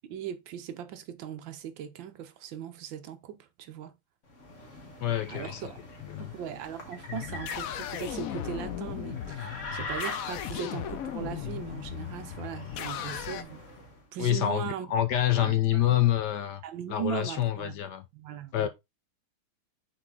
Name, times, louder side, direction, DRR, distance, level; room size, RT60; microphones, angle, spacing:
voice 1, 0.1-3.9 5.3-5.8 6.2-13.6 14.1-14.9 15.4-15.8 16.6-17.8 18.1-18.7, right 9 dB, 75° right, 1.5 m, -39 dB
sound 1, 4.3-14.0, left 2 dB, 40° left, 1.8 m, -43 dB
voice 2, 5.0-5.6 6.0-6.3 14.2-16.6 16.9-18.0 18.5-18.7, left 12 dB, 65° left, 1.2 m, -27 dB
sound 2, 7.1-13.4, left 10 dB, 85° left, 0.7 m, -37 dB
6.4 x 3.9 x 3.7 m
omnidirectional pair, 2.2 m